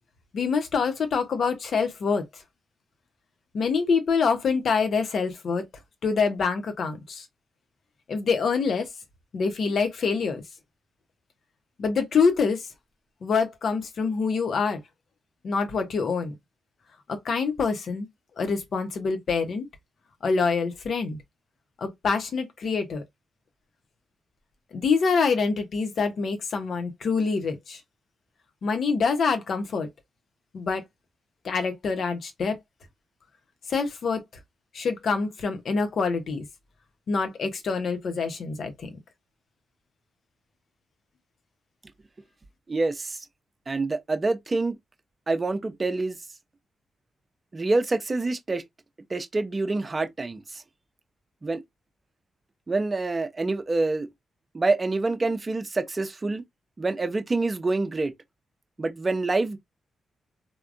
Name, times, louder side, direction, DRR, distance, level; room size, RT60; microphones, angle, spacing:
voice 1, 0.3-2.4 3.5-5.6 6.0-7.2 8.1-8.9 9.3-10.4 11.8-12.7 13.2-14.8 15.4-16.3 17.1-18.1 18.4-19.7 20.2-21.2 21.8-23.0 24.7-27.8 28.6-29.9 30.5-30.8 31.4-32.5 33.7-34.2 34.7-36.4 37.1-39.0, left 5 dB, 65° left, 0.8 m, -25 dB
voice 2, 42.7-43.2 43.7-44.8 45.3-46.2 47.5-48.6 49.1-50.6 51.4-51.6 52.7-54.1 54.5-56.4 56.8-58.1 58.8-59.6, right 3 dB, 35° right, 0.6 m, -26 dB
3.4 x 2.2 x 2.5 m
supercardioid pair, 50°, 0 cm